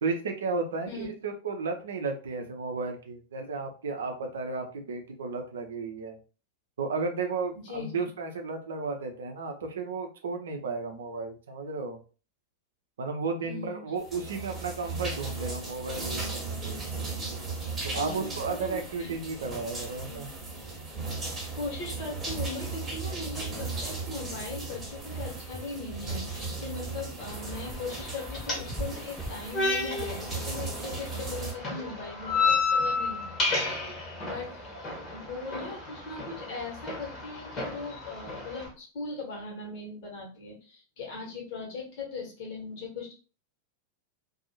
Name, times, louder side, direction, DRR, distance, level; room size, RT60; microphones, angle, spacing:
voice 1, 0.0-6.2 6.8-12.0 13.0-16.8 17.8-20.3 32.0-32.1 32.4-32.5 33.8-34.2, right 4 dB, 65° right, 4 dB, 0.5 m, -34 dB
voice 2, 7.5-7.9 13.4-13.8 17.9-19.3 20.1-20.2 21.5-33.4 34.2-34.5 35.1-43.1, left 3 dB, 50° left, -1 dB, 1.2 m, -39 dB
sound 1, 14.0-31.5, right 3 dB, 15° right, 1.0 m, -36 dB
sound 2, 23.7-31.2, left 1 dB, 10° left, 0.4 m, -46 dB
sound 3, 27.2-38.7, left 3 dB, 30° left, 1.0 m, -32 dB
2.6 x 2.3 x 2.7 m, 0.35 s
figure-of-eight pair, 90°, 0 cm